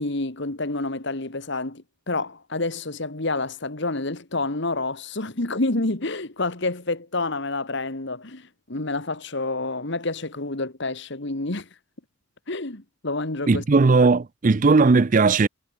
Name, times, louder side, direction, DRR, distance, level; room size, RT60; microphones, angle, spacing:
voice 1, 0.0-11.7 12.5-13.6, left 2 dB, 55° left, 1.8 m, -28 dB
voice 2, 13.5-15.5, right 4 dB, 40° right, 0.5 m, -17 dB
head